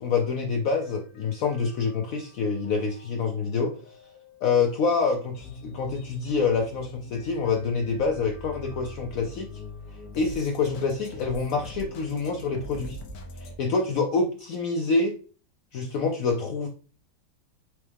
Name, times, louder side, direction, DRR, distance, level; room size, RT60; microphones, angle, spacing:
voice 1, 0.0-3.8 4.4-9.5 10.1-13.0 13.4-15.2 15.7-16.7, left 4 dB, 90° left, 3 dB, 0.7 m, -26 dB
sound 1, 0.6-13.5, left 2 dB, 65° left, 1.3 m, -43 dB
4.6 x 3.0 x 3.3 m, 0.39 s
omnidirectional pair, 2.0 m